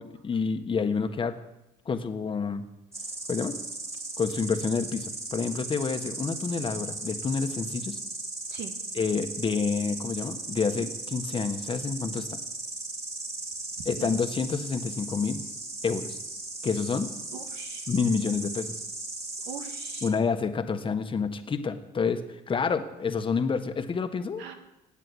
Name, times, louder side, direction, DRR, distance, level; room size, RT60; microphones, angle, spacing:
voice 1, 0.0-1.4 1.8-2.6 3.3-3.6 4.2-8.0 8.9-12.4 13.8-15.4 15.8-16.2 16.6-17.1 17.9-18.8 20.0-24.4, left 5 dB, 30° left, 8 dB, 1.3 m, -28 dB
Insect, 2.9-20.1, right 2 dB, 15° right, 2.7 m, -37 dB
voice 2, 17.3-17.9 19.4-20.1 24.4-24.5, right 8 dB, 90° right, 5 dB, 2.0 m, -42 dB
17.0 x 7.6 x 9.6 m, 0.93 s
cardioid pair, 110°, 17 cm